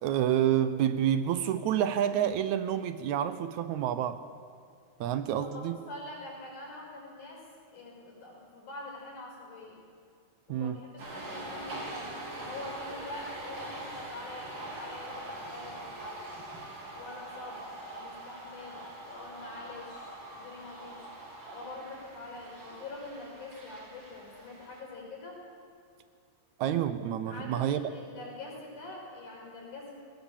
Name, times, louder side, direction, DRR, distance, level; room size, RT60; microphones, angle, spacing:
voice 1, 0.0-4.2 5.0-5.8 10.5-10.8 26.6-27.9, right 10 dB, 75° right, 11 dB, 2.0 m, -28 dB
voice 2, 5.4-9.8 10.5-16.4 16.9-21.1 21.5-25.4 27.3-30.0, left 2 dB, 75° left, -2 dB, 7.0 m, -45 dB
sound 1, 11.0-24.8, right 1 dB, 45° right, 3.6 m, -43 dB
sound 2, 19.1-25.6, equal, 25° left, 6.6 m, -57 dB
19.0 x 18.5 x 7.4 m, 2.4 s
omnidirectional pair, 3.6 m